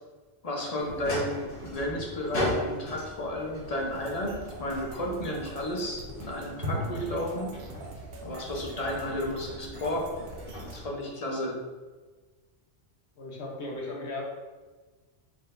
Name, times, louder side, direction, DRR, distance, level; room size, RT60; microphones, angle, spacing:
voice 1, 0.4-7.5 8.2-10.1 10.7-11.6, left 1 dB, 35° left, -1 dB, 0.8 m, -33 dB
sound 1, 0.6-1.9 6.6-8.5, equal, 80° right, 2.1 m, -39 dB
sound 2, 0.8-10.8, left 1 dB, 85° left, 1.6 m, -38 dB
sound 3, 3.9-10.8, right 2 dB, 60° right, 0.8 m, -45 dB
voice 2, 13.2-14.2, left 2 dB, 70° left, -1 dB, 1.2 m, -36 dB
4.4 x 4.1 x 2.6 m, 1.3 s
omnidirectional pair, 1.2 m